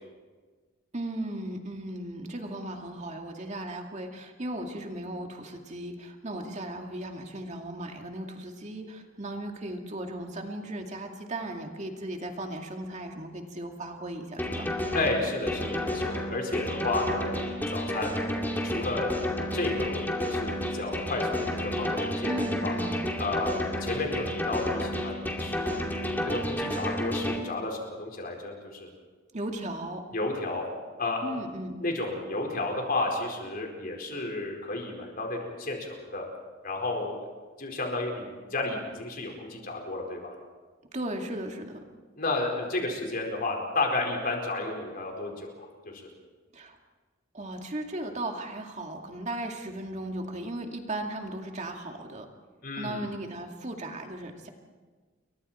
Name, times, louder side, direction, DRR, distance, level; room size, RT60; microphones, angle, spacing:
voice 1, 0.9-14.6 22.3-23.0 29.3-30.1 31.2-31.8 40.9-41.8 46.5-46.8 47.3-52.3 52.7-54.5, right 1 dB, 35° right, 3 dB, 2.3 m, -36 dB
sound 1, 14.4-27.4, left 1 dB, 10° left, 2.6 m, -31 dB
voice 2, 14.9-18.2 18.6-22.3 22.6-22.7 23.2-25.9 26.2-28.9 30.1-30.6 31.0-31.4 31.8-36.3 36.6-37.3 37.6-38.2 38.5-40.3 42.2-45.7 45.9-46.1 52.6-53.0, left 2 dB, 45° left, 1 dB, 4.8 m, -32 dB
29.5 x 23.0 x 4.4 m, 1.4 s
head